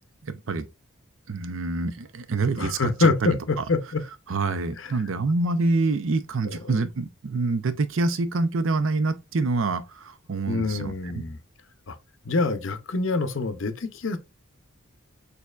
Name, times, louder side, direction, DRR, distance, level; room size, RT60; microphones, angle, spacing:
voice 1, 0.3-0.6 1.3-3.4 4.3-11.2, right 3 dB, 70° right, 0.6 m, -26 dB
voice 2, 2.6-4.0 4.7-4.9 6.4-6.8 10.5-11.4 11.9-12.0 12.2-14.2, left 3 dB, 65° left, 0.6 m, -26 dB
6.5 x 2.7 x 2.4 m
head